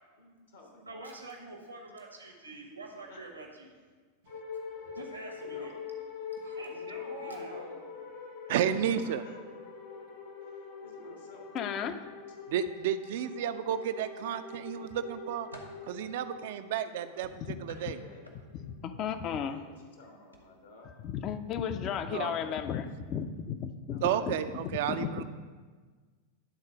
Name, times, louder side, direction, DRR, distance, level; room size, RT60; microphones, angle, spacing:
voice 1, 0.2-1.0 2.3-2.6 3.1-3.3 5.4-5.8 6.6-7.9 8.6-9.4 10.4-12.4 17.7-18.4 19.2-20.9 23.9-25.2, left 2 dB, 70° left, 1 dB, 1.3 m, -52 dB
voice 2, 0.9-3.7 4.7-5.7 6.4-7.7, right 2 dB, 80° right, 1 dB, 1.1 m, -46 dB
sound 1, 4.3-19.9, left 5 dB, 50° left, 1.4 m, -44 dB
voice 3, 8.5-9.2 12.5-15.5 15.9-17.3 17.6-18.0 22.1-22.6 24.0-25.2, right 9 dB, 55° right, 11 dB, 0.4 m, -32 dB
voice 4, 11.5-12.0 17.5-17.6 17.9-18.0 18.3-19.6 21.0-25.2, left 8 dB, 35° left, 9 dB, 0.5 m, -35 dB
sound 2, 13.7-14.5 15.0-15.9 17.2-18.7 19.1-19.4 20.2-20.4 20.8-21.0, equal, 90° left, 0.9 m, -52 dB
10.5 x 3.9 x 4.9 m, 1.4 s
figure-of-eight pair, 90°, 0 cm